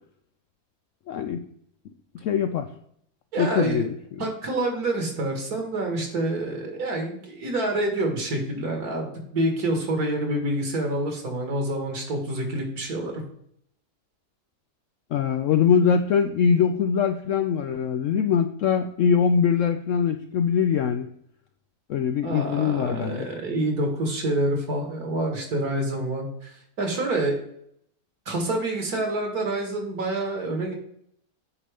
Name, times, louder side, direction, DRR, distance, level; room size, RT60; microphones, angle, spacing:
voice 1, 1.1-1.4 2.1-2.7 3.4-4.2 15.1-21.1 21.9-23.3, left 7 dB, 70° left, 7 dB, 0.7 m, -23 dB
voice 2, 3.3-3.9 4.2-9.1 9.3-13.1 22.2-27.4 28.3-30.7, right 1 dB, 65° right, 3 dB, 2.2 m, -27 dB
8.5 x 5.5 x 3.4 m, 0.69 s
omnidirectional pair, 1.8 m